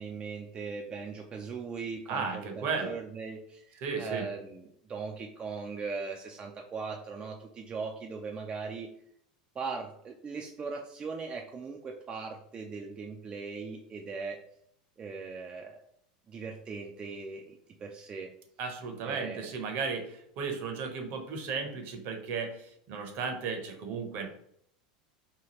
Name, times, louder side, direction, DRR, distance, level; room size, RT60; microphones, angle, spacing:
voice 1, 0.0-8.9 9.6-14.4 15.0-15.8 16.3-18.3 19.0-19.5, right 4 dB, 25° right, 2 dB, 0.3 m, -39 dB
voice 2, 2.1-2.9 3.8-4.3 18.6-24.3, right 5 dB, 55° right, 4 dB, 0.7 m, -35 dB
2.9 x 2.3 x 3.0 m, 0.69 s
hypercardioid pair, 105°, 4 cm